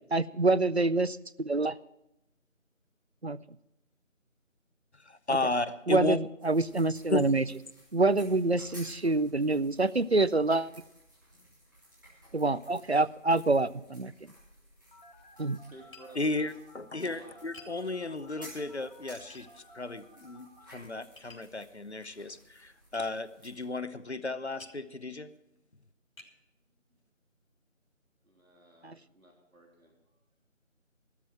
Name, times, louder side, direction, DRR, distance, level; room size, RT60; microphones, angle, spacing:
voice 1, 0.1-1.8 3.2-3.4 5.9-7.4 7.9-10.7 12.3-14.1 15.4-15.6 28.8-29.0, right 2 dB, 55° right, 18 dB, 0.5 m, -26 dB
voice 2, 4.9-6.2 7.1-7.3 16.1-25.4, left 2 dB, 55° left, 13 dB, 0.8 m, -34 dB
sound 1, 6.4-23.7, equal, 15° right, 3.3 m, -56 dB
Telephone, 14.9-20.7, left 1 dB, 35° left, 2.0 m, -56 dB
voice 3, 15.7-16.5 17.1-17.3 17.8-18.1 28.2-29.9, right 1 dB, 90° right, 0 dB, 3.4 m, -55 dB
Tap, 15.9-16.1 17.5-17.8 19.3-19.5 21.2-21.5 22.9-23.1 24.6-24.8 25.5-25.6 26.2-26.4, left 2 dB, 75° left, 3.7 m, -51 dB
14.0 x 13.0 x 4.6 m, 0.85 s
figure-of-eight pair, 175°, 40 cm